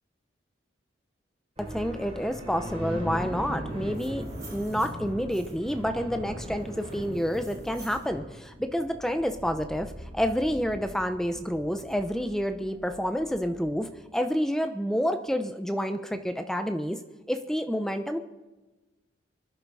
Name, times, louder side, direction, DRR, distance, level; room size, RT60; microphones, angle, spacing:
voice 1, 1.6-4.2 4.5-17.0 17.3-18.2, equal, 5° left, 7 dB, 0.8 m, -29 dB
sound 1, 1.6-14.0, equal, 35° right, 4.1 m, -40 dB
sound 2, 3.7-5.8 6.4-8.1, right 3 dB, 20° right, 2.0 m, -52 dB
23.5 x 10.5 x 4.2 m, 1.1 s
head